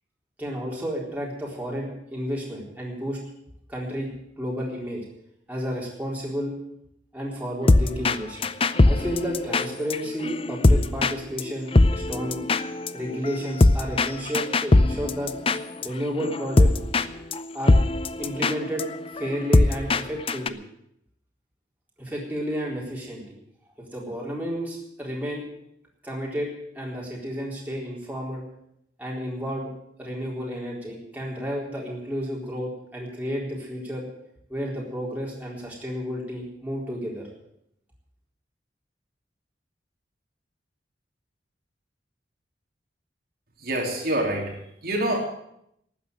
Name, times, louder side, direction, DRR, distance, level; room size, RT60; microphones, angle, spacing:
voice 1, 0.4-3.2 3.7-5.0 5.5-6.6 7.1-8.5 8.9-12.4 12.9-15.3 15.8-16.7 17.5-17.8 18.2-18.8 19.1-20.6 22.0-23.2 23.8-25.4 26.0-28.4 29.0-29.7 30.0-34.1 34.5-37.3, equal, 10° right, -3 dB, 4.1 m, -31 dB
sound 1, 7.7-8.2 8.4-11.1 11.4-11.5 11.7-15.9 16.2-17.1 17.3-17.4 17.7-20.0 20.3-20.5, left 2 dB, 30° left, 0.5 m, -20 dB
voice 2, 43.6-44.6 44.8-45.2, right 1 dB, 55° right, -1 dB, 3.0 m, -26 dB
12.5 x 9.5 x 9.5 m, 0.76 s
head